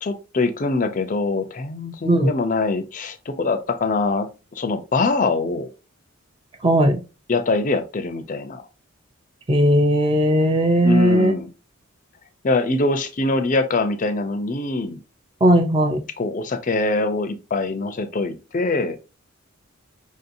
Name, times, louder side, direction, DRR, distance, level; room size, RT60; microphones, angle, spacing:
voice 1, 0.0-5.7 7.3-8.6 10.8-11.5 12.4-15.0 16.2-19.0, left 3 dB, 35° left, 0.4 m, -23 dB
voice 2, 6.6-7.0 9.5-11.3 15.4-16.0, right 1 dB, 25° right, 0.4 m, -17 dB
5.1 x 2.7 x 2.6 m
head